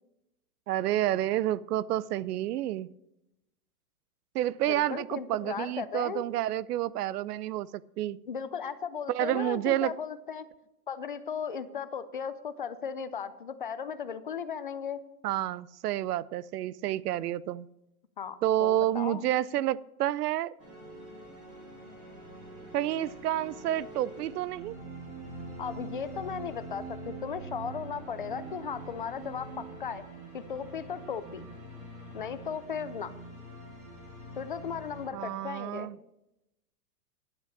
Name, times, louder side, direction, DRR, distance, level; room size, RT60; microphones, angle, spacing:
voice 1, 0.7-2.9 4.3-7.7 8.0-8.2 9.1-9.9 15.2-17.7 18.4-20.5 22.7-24.8 35.1-35.9, right 13 dB, 85° right, 21 dB, 0.5 m, -29 dB
voice 2, 4.7-6.2 8.3-10.5 10.9-15.0 18.2-19.2 25.6-30.1 30.3-31.5 32.1-33.1 34.4-35.9, left 7 dB, 35° left, 13 dB, 0.4 m, -36 dB
sound 1, 20.6-35.1, right 2 dB, 15° right, 2.5 m, -44 dB
10.5 x 5.9 x 7.1 m, 0.89 s
supercardioid pair, 175°, 46 cm